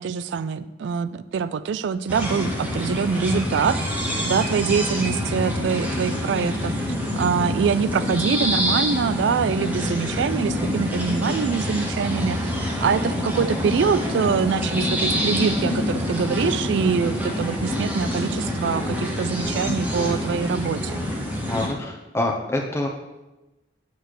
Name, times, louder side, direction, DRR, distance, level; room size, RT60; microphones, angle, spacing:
voice 1, 0.0-6.7 7.2-12.5 12.8-21.0, right 6 dB, 70° right, 14 dB, 0.3 m, -24 dB
sound 1, 2.1-21.7, left 1 dB, 10° right, 1.0 m, -26 dB
voice 2, 21.5-22.9, left 1 dB, 15° left, 1 dB, 0.8 m, -26 dB
7.8 x 3.4 x 6.4 m, 1.0 s
head